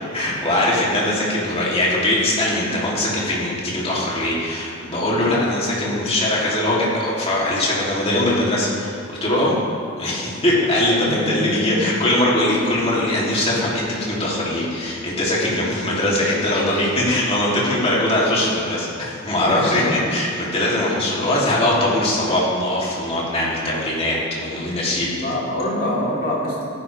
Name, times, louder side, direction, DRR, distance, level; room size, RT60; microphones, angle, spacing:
voice 1, 0.1-9.6 10.0-25.1, left 1 dB, 30° left, -5 dB, 2.7 m, -21 dB
voice 2, 11.1-11.9 19.3-20.1 25.1-26.7, left 1 dB, 45° left, -6 dB, 3.2 m, -25 dB
15.0 x 10.5 x 3.3 m, 2.3 s
head